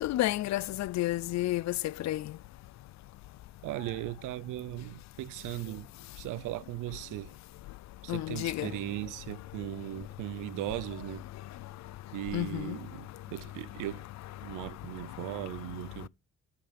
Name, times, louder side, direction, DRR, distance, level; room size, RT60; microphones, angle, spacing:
voice 1, 0.0-1.7 2.0-2.2 8.1-8.7 12.3-12.8, left 16 dB, 65° left, 0.5 m, -30 dB
voice 2, 3.6-7.3 8.0-11.2 12.1-14.1 14.4-16.1, right 16 dB, 90° right, 0.7 m, -38 dB
13.0 x 5.8 x 5.2 m
cardioid pair, 90°, 30 cm